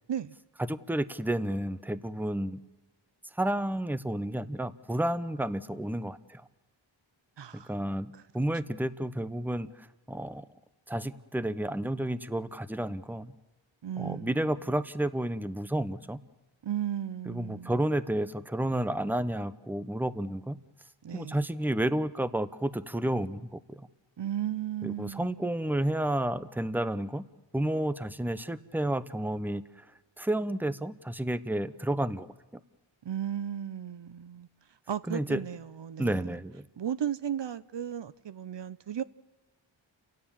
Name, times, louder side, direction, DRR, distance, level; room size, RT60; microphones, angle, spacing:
voice 1, 0.7-2.6 3.4-6.5 7.5-10.4 10.9-13.3 14.0-16.2 17.3-20.6 21.1-23.9 24.8-27.2 27.5-29.8 30.2-32.3 35.1-35.4 36.0-36.6, right 1 dB, 5° right, 0.9 m, -31 dB
voice 2, 7.4-7.7 13.8-14.4 16.6-17.8 21.0-21.4 24.2-25.5 33.0-34.5 34.9-36.3 36.8-39.0, right 10 dB, 60° right, 0.7 m, -35 dB
30.0 x 17.5 x 7.3 m
cardioid pair, 50°, 47 cm